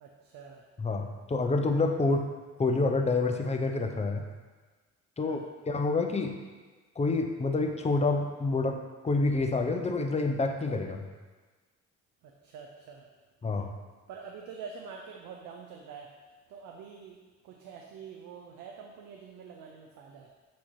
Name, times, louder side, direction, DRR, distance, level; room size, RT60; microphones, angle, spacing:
voice 1, 0.0-0.6 5.2-5.5 12.2-13.0 14.1-16.1 16.5-17.2 17.4-20.3, right 6 dB, 90° right, 1 dB, 0.6 m, -46 dB
voice 2, 0.8-2.3 2.6-4.2 5.2-6.3 7.0-11.0 13.4-13.7, left 3 dB, 20° left, 4 dB, 0.6 m, -28 dB
7.4 x 2.9 x 4.4 m, 1.4 s
cardioid pair, 90°, 30 cm